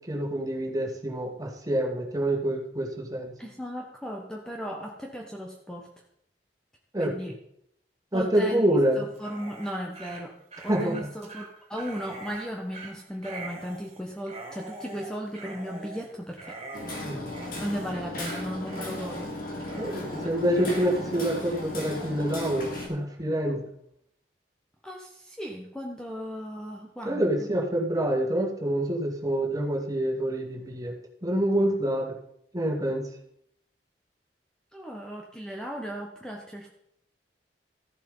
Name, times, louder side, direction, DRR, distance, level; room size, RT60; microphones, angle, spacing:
voice 1, 0.1-3.3 6.9-7.1 8.1-9.0 10.7-11.0 17.0-17.3 19.8-23.7 27.0-30.9 31.2-32.1 32.5-33.0, right 1 dB, 20° right, 0 dB, 2.3 m, -27 dB
voice 2, 3.4-5.9 7.0-7.3 8.1-8.6 9.0-16.6 17.6-19.3 24.8-27.5 34.7-36.7, equal, 5° left, 0 dB, 1.3 m, -36 dB
Dog, 9.1-22.1, right 2 dB, 35° right, 2.8 m, -44 dB
Hammer, 16.7-22.9, left 1 dB, 55° left, 3.2 m, -36 dB
14.0 x 7.4 x 5.5 m, 0.73 s
head